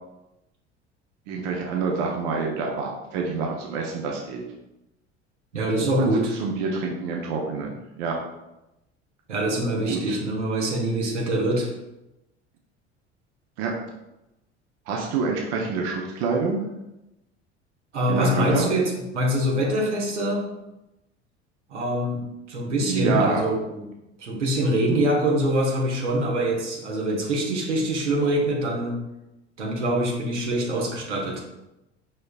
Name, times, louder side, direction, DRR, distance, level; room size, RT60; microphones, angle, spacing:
voice 1, 1.3-4.4 5.8-8.2 9.8-10.2 13.6-13.7 14.9-16.6 18.1-18.7 22.8-23.5, right 4 dB, 60° right, 0 dB, 0.8 m, -27 dB
voice 2, 5.5-6.3 9.3-11.7 17.9-20.4 21.7-22.2 22.5-23.9 24.2-29.0 29.6-31.4, right 1 dB, 85° right, -1 dB, 1.0 m, -24 dB
5.1 x 4.3 x 2.3 m, 0.94 s
figure-of-eight pair, 65°, 34 cm